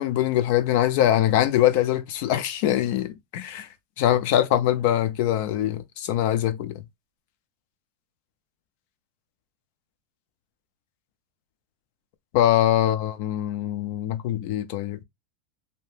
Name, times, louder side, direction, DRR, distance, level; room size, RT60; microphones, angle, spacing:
voice 1, 0.0-3.7 4.0-6.8 12.3-15.0, left 12 dB, 50° left, 0.5 m, -23 dB
2.8 x 2.1 x 3.2 m
supercardioid pair, 160°, 0 cm